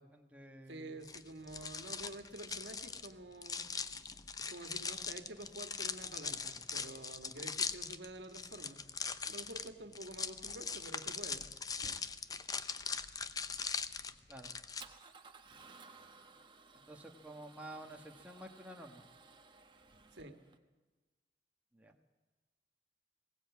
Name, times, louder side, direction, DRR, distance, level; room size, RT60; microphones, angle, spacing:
voice 1, 0.0-0.9 14.3-14.5 16.9-19.0 21.7-21.9, right 1 dB, 10° right, 2 dB, 1.4 m, -51 dB
voice 2, 0.7-3.7 4.5-8.8 9.2-11.4 20.1-20.4, right 1 dB, 80° right, 6 dB, 1.7 m, -49 dB
sound 1, 1.0-14.8, left 5 dB, 20° left, 0.6 m, -41 dB
Male speech man speaking / Car / Engine starting, 9.6-20.6, right 4 dB, 25° right, 1.1 m, -60 dB
20.5 x 18.0 x 8.4 m, 1.2 s
head